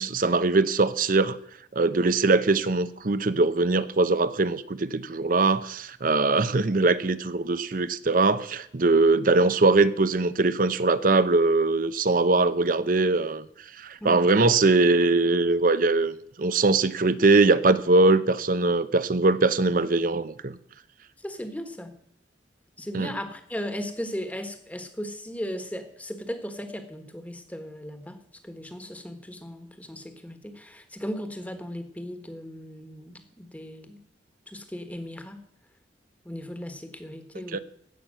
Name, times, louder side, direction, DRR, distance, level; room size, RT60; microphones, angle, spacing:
voice 1, 0.0-1.4 1.7-13.4 13.8-20.6 22.9-23.1 37.5-37.6, right 3 dB, 50° right, 14 dB, 0.7 m, -22 dB
voice 2, 21.2-22.0 22.8-34.0 34.5-35.4 36.2-37.6, equal, 10° left, 7 dB, 1.4 m, -37 dB
16.0 x 5.9 x 7.7 m, 0.71 s
head